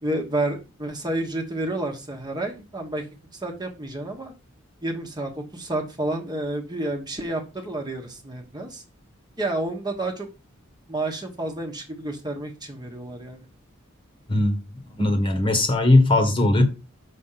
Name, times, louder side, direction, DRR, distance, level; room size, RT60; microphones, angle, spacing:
voice 1, 0.0-3.0 3.3-4.3 4.8-8.8 9.4-10.3 10.9-13.5, right 2 dB, 20° right, 1.4 m, -30 dB
voice 2, 15.0-16.6, left 2 dB, 25° left, 1.5 m, -18 dB
6.4 x 6.0 x 5.7 m
head